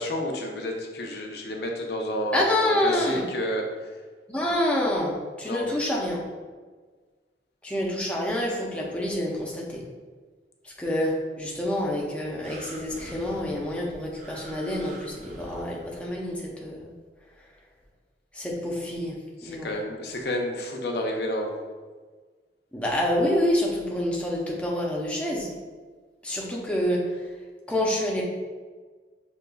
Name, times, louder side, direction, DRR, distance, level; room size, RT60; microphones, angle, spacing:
voice 1, 0.0-3.9 5.4-5.7 19.4-21.5, left 1 dB, 65° left, 1 dB, 0.6 m, -30 dB
voice 2, 2.3-3.2 4.3-6.2 7.6-9.8 10.6-16.9 18.3-19.2 19.4-19.7 22.7-25.5 26.2-27.3 27.7-28.2, left 1 dB, 5° left, -3 dB, 0.6 m, -27 dB
sound 1, 12.4-16.3 17.0-17.1, right 1 dB, 40° right, 0.5 m, -45 dB
6.2 x 2.9 x 2.3 m, 1.4 s
head